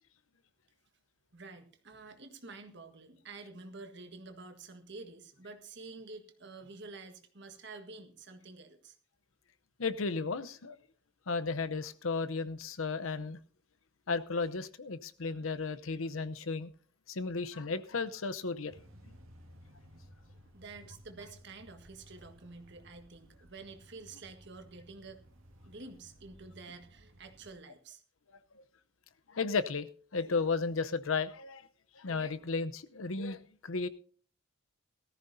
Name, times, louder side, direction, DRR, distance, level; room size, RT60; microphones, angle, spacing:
voice 1, 1.3-9.0 20.5-25.2 25.6-28.0, right 3 dB, 60° right, 1.6 m, -49 dB
voice 2, 9.8-10.8 11.3-13.4 14.1-16.7 17.1-18.7 29.3-29.9 30.1-31.7 32.0-33.9, left 4 dB, 80° left, 0.8 m, -34 dB
sound 1, 18.7-27.5, equal, 85° right, 2.2 m, -57 dB
18.0 x 14.0 x 2.7 m
head